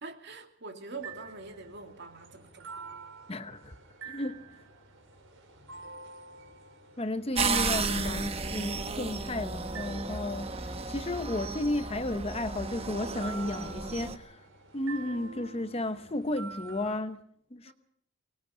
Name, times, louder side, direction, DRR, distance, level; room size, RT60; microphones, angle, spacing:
voice 1, 0.0-2.7 17.6-17.7, right 3 dB, 55° right, 2.7 m, -44 dB
sound 1, 1.0-17.0, right 4 dB, 80° right, 5.6 m, -48 dB
voice 2, 3.3-3.7 4.0-4.5 7.0-10.6 10.9-14.4 14.7-17.2 17.5-17.7, left 1 dB, 30° left, 0.9 m, -33 dB
sound 2, 7.3-14.2, right 4 dB, 30° right, 1.1 m, -33 dB
24.5 x 19.5 x 5.8 m
head